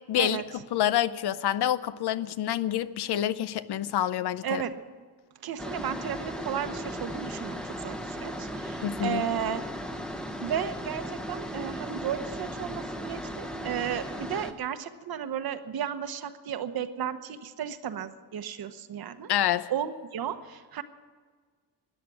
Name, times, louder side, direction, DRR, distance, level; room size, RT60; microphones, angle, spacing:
voice 1, 0.1-0.4 0.7-4.6 8.8-9.2 19.3-19.7, left 11 dB, 70° left, 15 dB, 0.7 m, -27 dB
voice 2, 4.4-4.8 5.4-9.6 10.4-19.3 19.7-20.8, right 9 dB, 60° right, 10 dB, 1.0 m, -34 dB
sound 1, 5.6-14.5, equal, ahead, 0.9 m, -36 dB
13.5 x 10.5 x 9.7 m, 1.5 s
cardioid pair, 145°, 41 cm